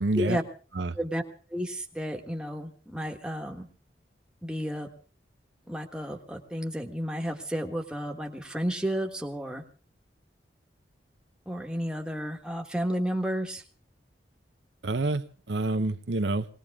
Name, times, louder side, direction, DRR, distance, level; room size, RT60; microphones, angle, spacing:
voice 1, 0.0-0.4 0.8-1.0 14.8-16.5, right 2 dB, 75° right, 9 dB, 0.8 m, -28 dB
voice 2, 1.5-3.7 4.4-4.9 5.7-9.6 11.4-13.6, equal, 5° right, 2 dB, 1.4 m, -32 dB
21.5 x 19.0 x 3.6 m, 0.38 s
head